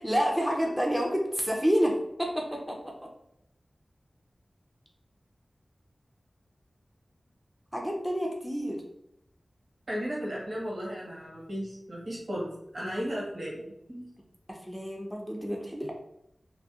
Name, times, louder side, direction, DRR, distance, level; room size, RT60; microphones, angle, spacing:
voice 1, 0.0-3.1 7.7-8.8 14.5-15.9, equal, ahead, -1 dB, 0.4 m, -29 dB
voice 2, 9.9-14.1, equal, 75° right, -4 dB, 0.9 m, -35 dB
2.3 x 2.1 x 2.7 m, 0.77 s
wide cardioid pair, 80°, 0 cm